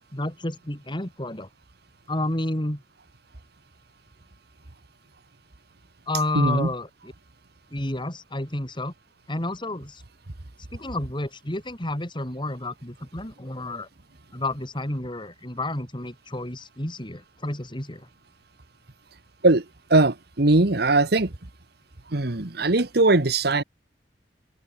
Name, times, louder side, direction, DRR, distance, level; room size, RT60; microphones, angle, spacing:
voice 1, 0.1-1.5 2.1-2.8 6.1-7.1 7.7-8.9 9.3-10.0 10.7-13.9 14.3-18.1, left 1 dB, 25° left, 3.6 m, -30 dB
voice 2, 6.3-6.7 19.4-19.6 19.9-21.3 22.1-23.6, right 2 dB, 65° right, 1.5 m, -20 dB
head